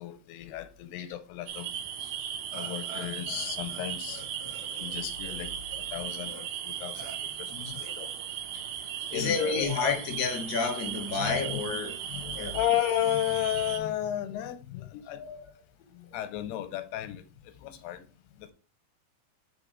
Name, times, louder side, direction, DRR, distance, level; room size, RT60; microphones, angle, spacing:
voice 1, 0.0-1.7 2.5-4.3 4.8-5.5 5.9-8.1 9.1-10.0 11.1-11.4 12.0-15.2 15.9-17.2 17.6-18.1 18.4-18.5, left 12 dB, 90° left, 2.7 m, -33 dB
sound 1, 1.5-13.8, right 9 dB, 90° right, 2.6 m, -37 dB
Burping eructation, 2.5-3.8 4.1-5.9 6.3-6.4 6.9-7.2 7.7-8.3, right 2 dB, 35° right, 2.3 m, -47 dB
voice 2, 9.0-12.0 12.3-12.6 15.1-15.4, left 5 dB, 40° left, 1.4 m, -30 dB
5.4 x 4.1 x 4.9 m
omnidirectional pair, 4.6 m